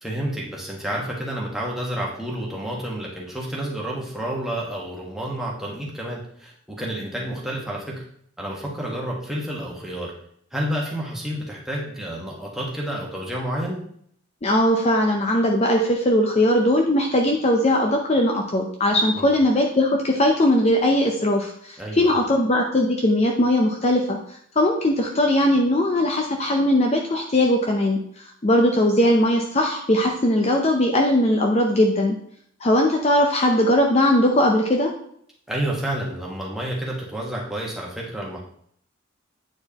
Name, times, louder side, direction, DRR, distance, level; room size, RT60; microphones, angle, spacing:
voice 1, 0.0-8.0 8.4-10.1 10.5-13.8 19.1-19.3 21.8-22.2 35.5-38.4, right 1 dB, ahead, -4 dB, 1.3 m, -30 dB
voice 2, 14.4-24.2 24.6-28.0 28.4-32.1 32.6-34.9, left 1 dB, 30° left, 1 dB, 0.6 m, -19 dB
8.7 x 4.5 x 2.9 m, 0.66 s
head